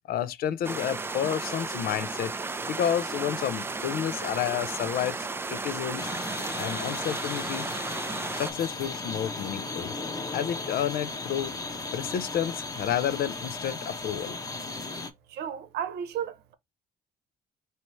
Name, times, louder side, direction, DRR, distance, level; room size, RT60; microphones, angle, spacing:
voice 1, 0.1-2.3 2.7-6.1 6.6-7.7 8.3-9.9 10.3-11.5 11.9-14.4, left 10 dB, 60° left, 0.5 m, -30 dB
sound 1, 0.6-8.5, right 3 dB, 15° right, 0.4 m, -34 dB
sound 2, 6.0-15.1, left 3 dB, 20° left, 0.8 m, -36 dB
voice 2, 15.3-16.5, right 9 dB, 75° right, 0.8 m, -33 dB
4.3 x 2.8 x 3.0 m
cardioid pair, 110°, 17 cm